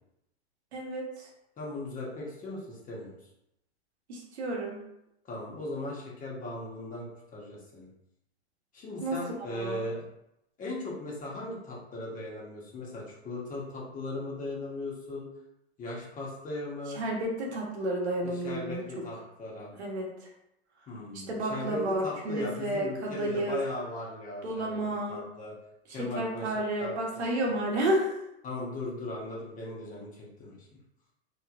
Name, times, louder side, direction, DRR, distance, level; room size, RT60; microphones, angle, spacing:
voice 1, 0.7-1.3 4.1-4.8 9.0-9.2 9.5-9.9 16.9-19.0 19.8-20.1 21.1-23.6 24.4-25.2 26.0-28.1, right 1 dB, 80° right, -1 dB, 1.1 m, -31 dB
voice 2, 1.6-3.1 5.3-7.9 8.7-10.0 10.6-15.3 15.8-17.0 18.2-19.7 20.9-24.8 25.1-25.5 25.9-26.5 26.8-27.2 28.4-30.5, left 2 dB, 25° left, -4 dB, 1.2 m, -38 dB
3.4 x 3.0 x 2.5 m, 0.83 s
hypercardioid pair, 115°, 32 cm